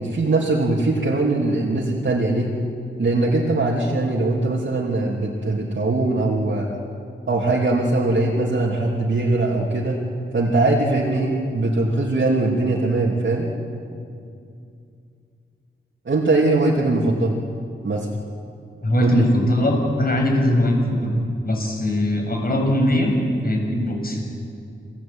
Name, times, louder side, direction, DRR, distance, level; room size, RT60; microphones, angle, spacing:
voice 1, 0.0-2.5 3.0-6.7 7.3-10.0 10.3-13.5 16.0-17.4 17.8-18.1 19.0-19.3, right 2 dB, 60° right, -3 dB, 3.1 m, -21 dB
voice 2, 18.8-21.1 21.4-23.1 23.4-24.2, left 1 dB, 45° left, 1 dB, 7.4 m, -20 dB
28.5 x 19.0 x 9.0 m, 2.5 s
wide cardioid pair, 75°, 21 cm